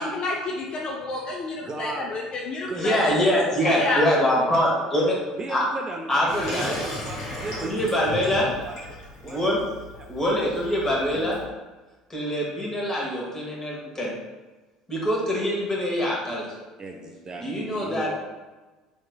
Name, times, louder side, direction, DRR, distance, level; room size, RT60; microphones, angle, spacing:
voice 1, 0.0-3.1 3.6-4.0, left 3 dB, 40° left, -2 dB, 0.5 m, -29 dB
voice 2, 1.6-2.2 2.7-4.1 5.3-7.7 8.0-8.7 9.2-9.6 9.9-10.1 11.1-11.3 16.8-18.2, right 2 dB, 30° right, 1 dB, 0.4 m, -36 dB
voice 3, 2.7-5.2 5.5-5.6 6.1-6.8 7.6-8.5 9.2-9.6 10.1-11.4 12.1-14.1 14.9-16.4 17.4-18.1, equal, 20° left, -4 dB, 1.2 m, -24 dB
Water tap faucet / Sink (filling or washing), 6.3-11.5, left 1 dB, 70° left, 1.2 m, -37 dB
3.5 x 3.0 x 2.2 m, 1.2 s
figure-of-eight pair, 65°, 3 cm